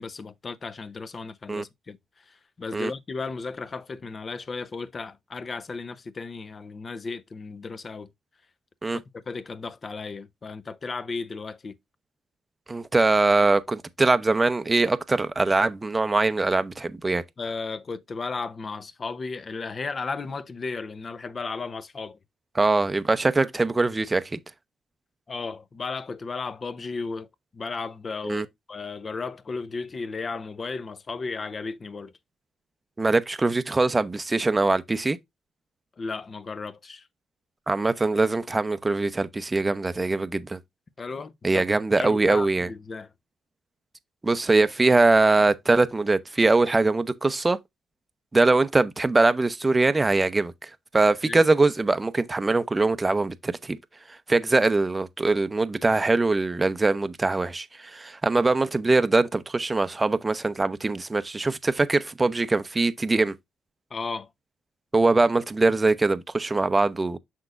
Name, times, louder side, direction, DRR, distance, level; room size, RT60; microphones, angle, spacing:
voice 1, 0.0-2.0 2.3-8.1 8.9-11.7 17.4-22.2 25.3-27.3 27.5-32.1 36.0-37.1 41.0-41.6 42.0-43.1 51.2-51.4 63.9-64.3, left 4 dB, 35° left, 0.7 m, -34 dB
voice 2, 12.7-17.2 22.5-24.4 28.2-28.5 33.0-35.2 37.7-40.6 41.4-42.7 44.2-47.6 48.3-53.8 54.3-63.3 64.9-67.2, right 3 dB, 20° right, 0.6 m, -22 dB
6.6 x 6.0 x 2.5 m
cardioid pair, 90°, 0 cm